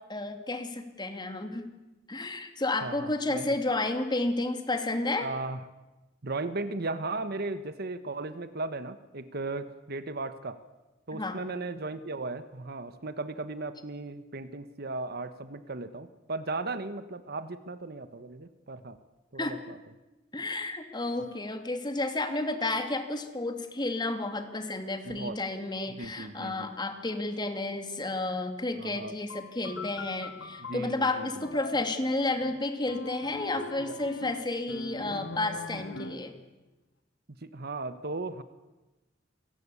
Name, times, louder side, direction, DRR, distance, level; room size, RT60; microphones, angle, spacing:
voice 1, 0.1-1.7 2.1-5.3 11.1-11.4 19.4-19.6 20.3-36.4, left 2 dB, 25° left, 6 dB, 2.5 m, -31 dB
voice 2, 2.8-3.6 5.2-5.6 6.2-10.6 11.1-19.0 19.3-19.8 25.0-25.4 26.0-26.7 28.8-29.1 30.7-31.3 33.8-34.0 37.4-38.4, right 3 dB, 55° right, 12 dB, 1.2 m, -36 dB
sound 1, 29.3-36.4, left 2 dB, 70° left, 2.1 m, -41 dB
27.5 x 18.5 x 8.4 m, 1.1 s
head